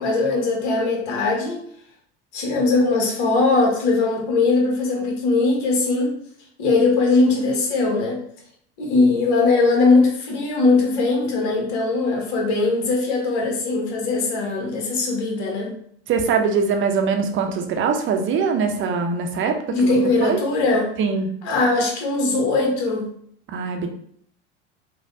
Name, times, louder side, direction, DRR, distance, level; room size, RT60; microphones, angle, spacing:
voice 1, 0.0-1.6 2.3-6.1 6.6-8.2 8.8-15.7 19.7-20.9 21.4-23.1, left 3 dB, 70° left, 0 dB, 0.9 m, -20 dB
voice 2, 16.1-19.9 20.2-20.4 21.0-21.3 23.5-23.9, right 5 dB, 35° right, 5 dB, 0.6 m, -22 dB
3.2 x 2.2 x 2.6 m, 0.64 s
hypercardioid pair, 80°, 34 cm